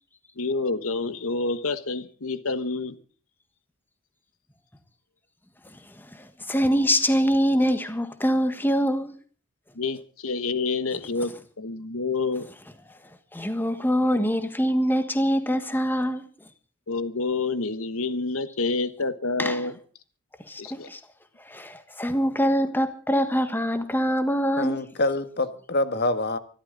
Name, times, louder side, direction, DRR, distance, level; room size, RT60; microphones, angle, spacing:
voice 1, 0.4-3.0 9.8-12.5 16.9-19.7 20.6-20.9, left 3 dB, 70° left, 1.3 m, -28 dB
voice 2, 6.1-9.1 13.3-16.2 19.4-19.7 20.5-21.0 21.5-24.8, equal, 10° left, 1.5 m, -24 dB
voice 3, 24.6-26.4, left 2 dB, 50° left, 1.7 m, -26 dB
25.0 x 13.0 x 3.9 m
head